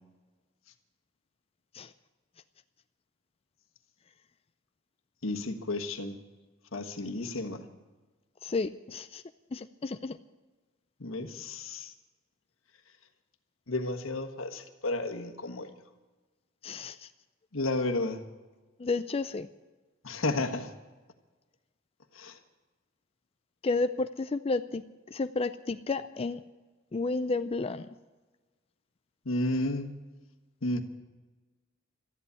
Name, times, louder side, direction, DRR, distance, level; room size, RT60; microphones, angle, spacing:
voice 1, 5.2-6.2 6.7-7.7 11.0-11.9 13.7-15.7 17.5-18.2 20.0-20.7 22.1-22.4 29.2-29.9 30.6-30.8, left 2 dB, 85° left, 5 dB, 1.5 m, -32 dB
voice 2, 8.4-9.2 9.5-10.2 16.6-17.1 18.8-19.5 23.6-24.8 25.1-26.4 26.9-27.9, left 3 dB, 30° left, 10 dB, 0.4 m, -31 dB
13.5 x 11.0 x 9.7 m, 1.2 s
head